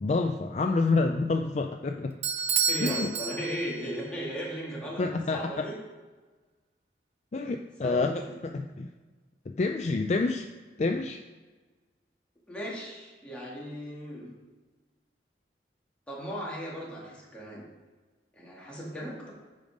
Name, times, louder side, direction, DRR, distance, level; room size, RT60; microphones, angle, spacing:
voice 1, 0.0-2.2 2.8-3.1 5.0-5.7 7.3-8.9 9.5-10.5 10.8-11.2, left 3 dB, 40° left, 5 dB, 0.4 m, -28 dB
Bell / Doorbell, 2.2-3.9, right 6 dB, 35° right, 0.5 m, -29 dB
voice 2, 2.7-5.8 7.4-7.5 7.8-8.4 12.5-14.3 16.1-17.6 18.3-19.3, equal, 5° left, -6 dB, 2.1 m, -37 dB
8.7 x 5.4 x 5.0 m, 1.3 s
head